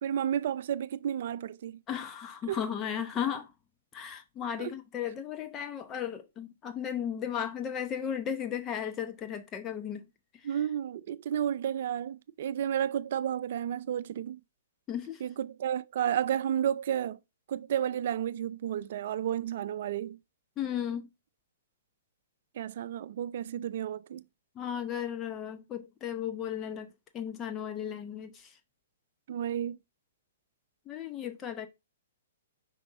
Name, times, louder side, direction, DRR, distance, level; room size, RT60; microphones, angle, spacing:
voice 1, 0.0-1.8 2.5-2.6 4.6-4.7 10.4-14.4 15.2-17.2 17.5-20.2 22.5-24.2 29.3-29.8, right 10 dB, 55° right, 0.4 m, -32 dB
voice 2, 1.9-3.5 3.9-10.0 14.9-15.2 20.6-21.1 24.6-26.9 27.1-28.6 30.9-31.7, left 9 dB, 25° left, 0.8 m, -35 dB
6.0 x 5.3 x 3.6 m
figure-of-eight pair, 115°, 0 cm